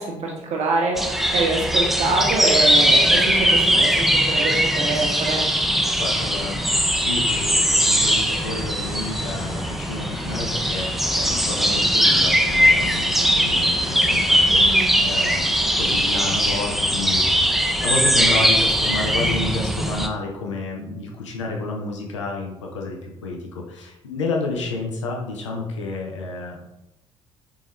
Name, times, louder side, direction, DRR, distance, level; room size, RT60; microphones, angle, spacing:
voice 1, 0.0-5.4 14.4-15.1, right 3 dB, 45° right, 0 dB, 1.0 m, -25 dB
sound 1, 1.0-16.3, left 2 dB, 50° left, 1.0 m, -42 dB
sound 2, 1.0-20.1, equal, ahead, 0.4 m, -20 dB
voice 2, 6.0-26.6, left 3 dB, 75° left, 0 dB, 0.6 m, -30 dB
4.1 x 3.7 x 3.0 m, 0.90 s
figure-of-eight pair, 45°, 15 cm